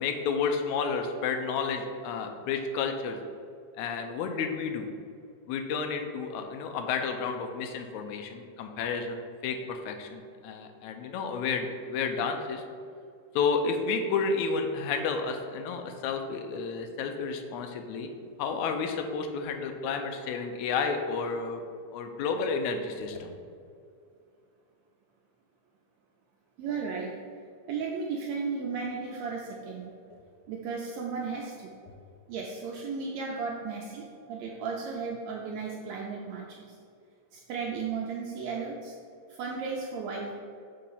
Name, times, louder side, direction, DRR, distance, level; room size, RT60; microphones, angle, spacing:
voice 1, 0.0-3.2 3.8-4.9 5.5-12.6 13.4-18.1 18.4-21.6 21.9-23.3, left 5 dB, 80° left, 5 dB, 1.8 m, -31 dB
voice 2, 26.6-27.1 27.7-29.9 30.5-31.7 32.3-36.8 37.3-39.0 39.3-40.3, right 5 dB, 80° right, -1 dB, 1.6 m, -35 dB
6.6 x 3.1 x 5.5 m, 2.3 s
omnidirectional pair, 3.6 m